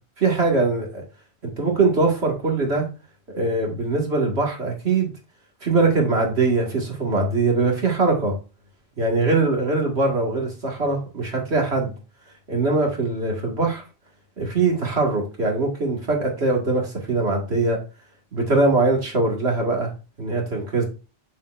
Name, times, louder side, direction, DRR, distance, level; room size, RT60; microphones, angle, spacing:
voice 1, 0.2-1.0 1.4-2.9 3.3-5.1 5.6-8.3 9.0-11.9 12.5-13.8 14.4-17.8 18.3-19.9 20.2-20.8, right 3 dB, 90° right, 0 dB, 2.3 m, -22 dB
7.3 x 6.6 x 2.6 m, 0.32 s
omnidirectional pair, 1.1 m